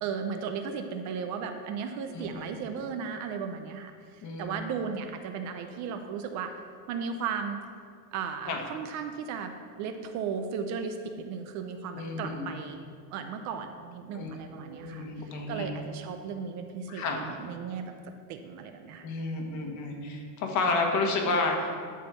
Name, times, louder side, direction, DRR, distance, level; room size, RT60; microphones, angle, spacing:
voice 1, 0.0-6.5 6.9-7.6 8.1-12.8 13.1-17.9 18.3-19.1, right 6 dB, 40° right, 6 dB, 0.6 m, -36 dB
voice 2, 2.1-2.5 4.2-4.5 8.5-8.6 12.0-12.5 14.1-14.3 14.6-15.7 16.9-17.3 19.0-21.8, left 3 dB, 40° left, 2 dB, 1.4 m, -31 dB
11.0 x 4.4 x 6.9 m, 2.2 s
cardioid pair, 170°, 42 cm